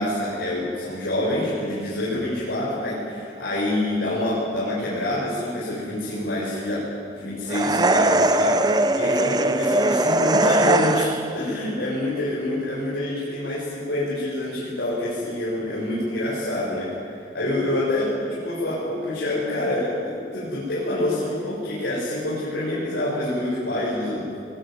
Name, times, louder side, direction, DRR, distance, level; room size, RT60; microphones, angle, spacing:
voice 1, 0.0-6.8 7.1-24.2, left 1 dB, 75° left, -8 dB, 7.5 m, -26 dB
sound 1, 7.5-11.4, right 2 dB, 20° right, 0.9 m, -20 dB
23.0 x 21.5 x 9.6 m, 2.5 s
head